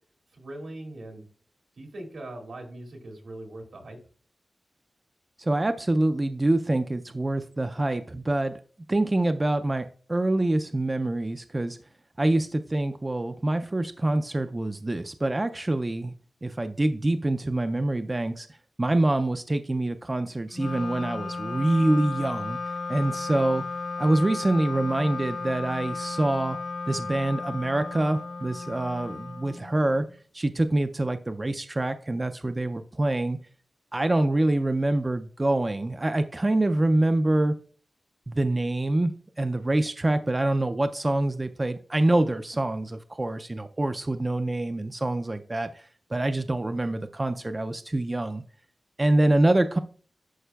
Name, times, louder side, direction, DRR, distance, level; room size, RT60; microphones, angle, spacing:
voice 1, 0.3-1.2 1.8-4.0, right 1 dB, 80° right, 2.1 m, -40 dB
voice 2, 5.4-8.6 8.9-11.8 12.2-16.1 16.4-18.5 18.8-22.6 22.9-23.6 24.0-26.6 26.9-30.0 30.3-33.4 33.9-37.6 38.3-39.1 39.4-48.4 49.0-49.8, right 1 dB, 25° right, 0.3 m, -25 dB
Wind instrument woodwind instrument, 20.5-30.1, left 3 dB, 90° left, 0.9 m, -34 dB
11.0 x 5.0 x 2.3 m
wide cardioid pair, 125°, 0 cm